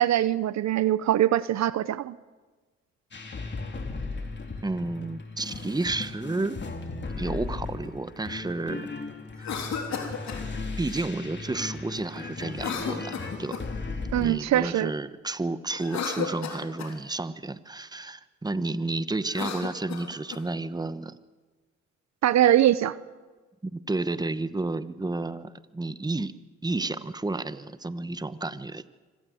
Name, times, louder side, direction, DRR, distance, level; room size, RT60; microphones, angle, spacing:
voice 1, 0.0-2.2 14.1-14.9 22.2-23.0, right 12 dB, 65° right, 0.7 m, -22 dB
sound 1, 3.1-14.3, left 3 dB, 40° left, 3.2 m, -36 dB
voice 2, 4.6-6.6 7.2-8.9 9.4-9.5 10.8-13.6 14.1-21.1 23.6-26.3 26.6-28.8, right 2 dB, 15° right, 1.1 m, -31 dB
Cough, 9.3-10.4 12.5-13.8 15.7-17.0 19.2-20.4, left 6 dB, 65° left, 3.6 m, -34 dB
25.0 x 17.5 x 7.8 m
supercardioid pair, 70°, 30 cm